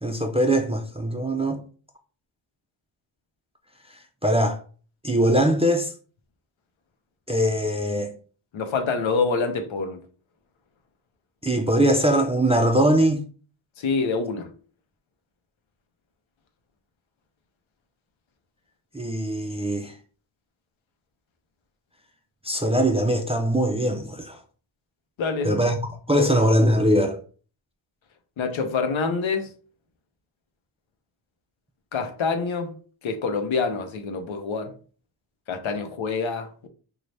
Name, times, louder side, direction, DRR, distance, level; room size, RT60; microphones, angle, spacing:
voice 1, 0.0-1.6 4.2-4.6 5.0-5.9 7.3-8.1 11.4-13.2 18.9-19.9 22.4-24.4 25.4-25.8 26.1-27.2, right 1 dB, 15° right, 0.4 m, -21 dB
voice 2, 8.5-10.0 13.8-14.5 25.2-25.6 26.1-26.3 28.4-29.5 31.9-32.8 33.0-34.7 35.5-36.7, left 4 dB, 70° left, 0.8 m, -26 dB
3.2 x 2.3 x 4.0 m
wide cardioid pair, 95°, 50 cm